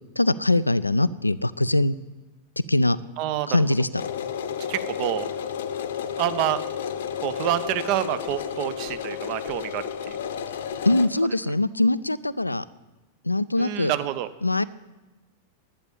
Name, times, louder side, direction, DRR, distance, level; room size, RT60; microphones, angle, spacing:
voice 1, 0.2-2.0 2.7-3.0 3.5-4.0 10.9-12.6 13.2-13.9 14.4-14.6, left 2 dB, 85° left, 17 dB, 0.4 m, -22 dB
voice 2, 3.2-3.6 4.7-5.3 6.2-6.6 7.2-10.2 13.6-14.3, right 13 dB, 45° right, 13 dB, 0.8 m, -27 dB
sound 1, 4.0-11.1, left 8 dB, 60° left, 0.8 m, -32 dB
11.5 x 8.5 x 8.6 m, 1.1 s
figure-of-eight pair, 90°, 0 cm